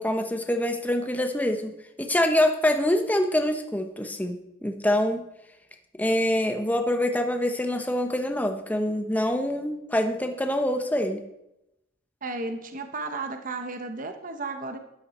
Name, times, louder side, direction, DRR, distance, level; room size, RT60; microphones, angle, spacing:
voice 1, 0.0-1.7 2.0-5.2 6.0-11.2, left 1 dB, 10° left, 5 dB, 0.9 m, -25 dB
voice 2, 12.2-14.8, right 3 dB, 45° right, 6 dB, 1.0 m, -33 dB
12.5 x 11.5 x 4.3 m, 0.87 s
head